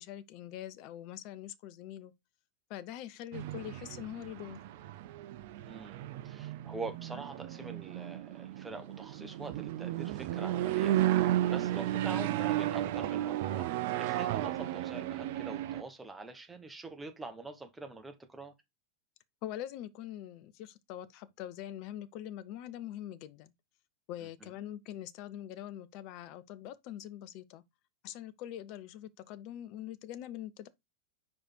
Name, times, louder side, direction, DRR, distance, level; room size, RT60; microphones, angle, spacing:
voice 1, 0.0-2.1 2.7-4.6 19.4-23.5 24.1-27.6 28.0-30.7, left 12 dB, 45° left, 0.6 m, -43 dB
sound 1, 3.3-15.8, right 13 dB, 50° right, 0.5 m, -33 dB
voice 2, 5.6-18.5 24.2-24.5, right 3 dB, 10° right, 1.2 m, -45 dB
5.0 x 4.3 x 4.4 m
figure-of-eight pair, 90°, 0 cm